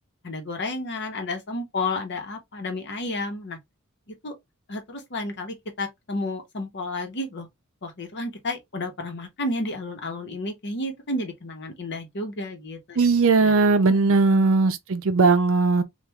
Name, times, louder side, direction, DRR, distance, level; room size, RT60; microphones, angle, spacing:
voice 1, 0.2-3.6 4.2-4.4 4.7-7.5 7.8-13.0 13.4-13.6 14.0-14.6, left 2 dB, 55° left, 1.0 m, -32 dB
voice 2, 13.0-15.8, right 4 dB, 65° right, 0.6 m, -19 dB
3.4 x 2.4 x 2.9 m
head